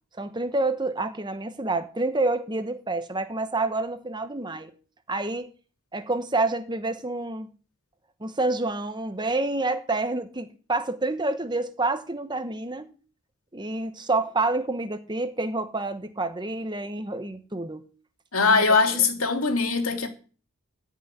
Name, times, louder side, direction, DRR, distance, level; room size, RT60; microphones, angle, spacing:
voice 1, 0.2-4.7 5.1-5.5 5.9-7.5 8.2-12.9 13.5-17.9 18.5-18.6, right 2 dB, 20° right, 1.2 m, -28 dB
voice 2, 18.3-20.1, left 4 dB, 80° left, 2.7 m, -21 dB
14.5 x 6.3 x 9.7 m
head